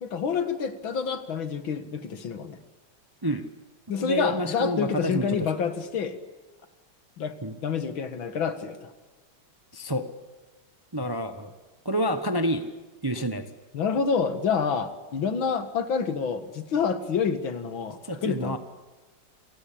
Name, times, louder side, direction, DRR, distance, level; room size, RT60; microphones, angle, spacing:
voice 1, 0.0-2.6 3.9-6.2 7.2-7.4 7.6-8.9 13.7-18.6, left 6 dB, 75° left, 11 dB, 2.4 m, -28 dB
voice 2, 3.9-5.4 7.4-7.6 9.7-10.0 10.9-11.5 11.8-12.6 13.0-13.4 18.0-18.6, equal, 15° right, 9 dB, 0.8 m, -28 dB
28.0 x 18.0 x 8.6 m, 1.2 s
omnidirectional pair, 2.2 m